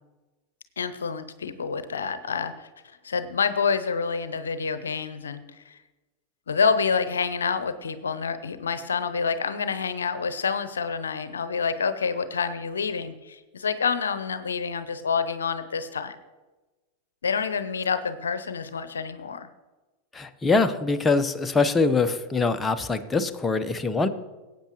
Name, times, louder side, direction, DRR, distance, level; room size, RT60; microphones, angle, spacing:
voice 1, 0.8-2.7 3.0-5.8 6.5-16.2 17.2-19.5, left 5 dB, 80° left, 12 dB, 0.7 m, -28 dB
voice 2, 20.1-24.1, left 4 dB, 15° left, 8 dB, 0.8 m, -23 dB
18.5 x 8.5 x 3.1 m, 1.2 s
hypercardioid pair, 90°, 0 cm